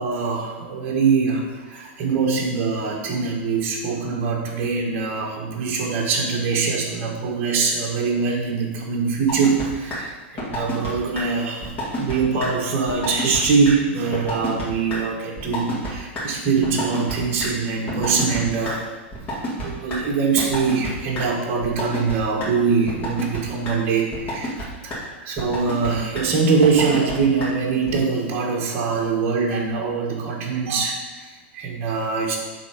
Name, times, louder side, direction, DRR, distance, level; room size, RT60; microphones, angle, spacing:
voice 1, 0.0-18.8 19.6-24.6 24.8-32.4, right 5 dB, 35° right, -2 dB, 1.4 m, -23 dB
sound 1, 9.3-9.7 9.9-10.0 10.4-10.9 11.1-11.2 11.6-12.2 12.4-12.5 12.9-13.4 13.6-13.7 14.1-14.6 14.9-15.0 15.4-15.9 16.2-16.3 16.6-17.1 17.4-17.5 17.9-18.7 19.1-20.0 20.4-20.9 21.1-21.2 21.6-22.1 22.4-22.5 22.9-23.4 23.6-23.7 24.1-24.6 24.9-25.0 25.4-25.9 26.1-26.2 26.6-27.1 27.4-27.5 27.9-28.0, left 1 dB, 25° left, 2.1 m, -28 dB
7.3 x 3.6 x 4.9 m, 1.2 s
supercardioid pair, 150°, 7 cm